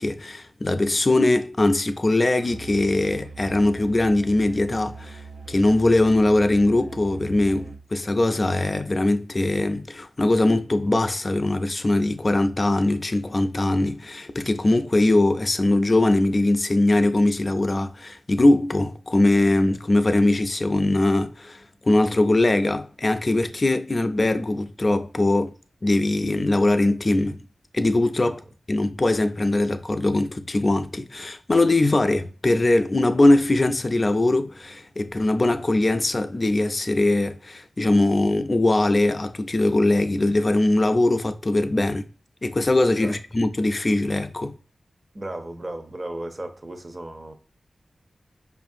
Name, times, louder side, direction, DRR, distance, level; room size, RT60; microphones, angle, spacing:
voice 1, 0.0-5.2 5.5-25.5 25.8-27.4 27.7-28.4 28.7-42.0 42.4-44.6, left 2 dB, 35° left, 0.4 m, -21 dB
Musical instrument, 2.4-7.9, right 4 dB, 90° right, 0.4 m, -41 dB
voice 2, 45.1-47.3, right 1 dB, 35° right, 0.6 m, -35 dB
5.2 x 2.5 x 2.5 m
wide cardioid pair, 85°, 0 cm